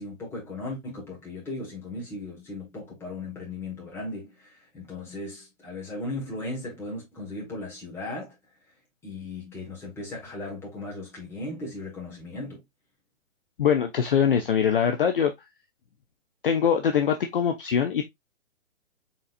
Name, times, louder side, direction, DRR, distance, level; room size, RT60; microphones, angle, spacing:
voice 1, 0.0-8.3 9.0-12.6, left 2 dB, 5° left, 1.6 m, -37 dB
voice 2, 13.6-15.3 16.4-18.0, left 7 dB, 45° left, 0.6 m, -23 dB
4.3 x 3.8 x 2.5 m
hypercardioid pair, 155°, 41 cm